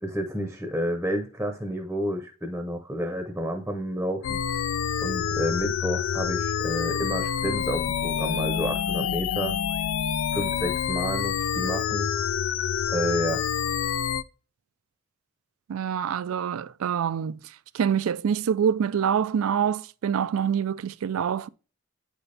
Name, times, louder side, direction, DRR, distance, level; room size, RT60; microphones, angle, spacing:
voice 1, 0.0-4.4 5.0-9.6 10.3-12.1 12.9-13.4, equal, 10° right, 0.7 m, -30 dB
sound 1, 4.2-14.2, left 8 dB, 70° left, 0.3 m, -27 dB
voice 2, 15.7-21.5, right 8 dB, 80° right, 0.4 m, -26 dB
8.9 x 4.1 x 3.3 m
head